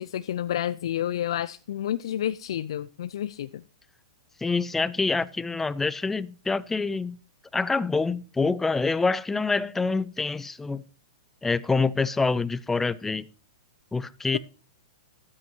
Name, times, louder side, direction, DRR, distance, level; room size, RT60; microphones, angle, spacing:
voice 1, 0.0-3.6, left 11 dB, 65° left, 0.5 m, -30 dB
voice 2, 4.4-7.2 7.5-10.8 11.4-13.3 13.9-14.4, left 4 dB, 10° left, 0.7 m, -26 dB
13.5 x 12.5 x 3.0 m
hypercardioid pair, 110°, 3 cm